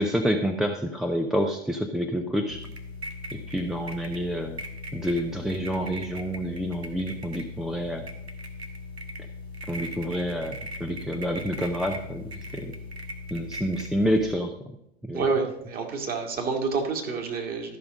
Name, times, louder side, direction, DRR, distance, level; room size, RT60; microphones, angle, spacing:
voice 1, 0.0-2.6 3.3-4.6 4.9-8.1 9.7-12.7 13.3-14.5 15.0-15.2, equal, ahead, 5 dB, 0.5 m, -28 dB
sound 1, 2.5-14.3, left 2 dB, 90° right, 1.4 m, -39 dB
voice 2, 15.1-17.8, right 4 dB, 30° right, 3 dB, 2.0 m, -28 dB
13.0 x 5.7 x 5.2 m, 0.81 s
figure-of-eight pair, 95°, 31 cm